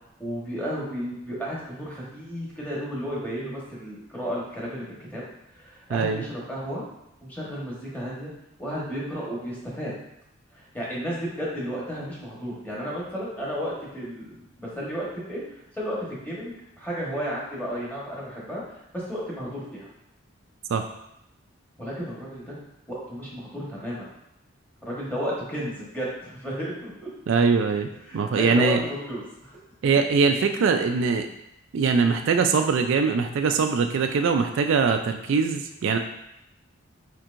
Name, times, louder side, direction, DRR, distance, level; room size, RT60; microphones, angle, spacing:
voice 1, 0.2-4.8 5.1-5.2 5.5-6.9 7.2-8.3 8.6-9.9 10.5-19.9 21.8-22.6 22.9-24.1 24.8-27.1 28.1-29.6, equal, 10° left, -6 dB, 1.2 m, -33 dB
voice 2, 5.9-6.3 20.7-20.8 27.3-28.8 29.8-31.3 31.7-36.0, right 5 dB, 65° right, 5 dB, 0.3 m, -22 dB
4.4 x 4.4 x 2.5 m, 0.83 s
head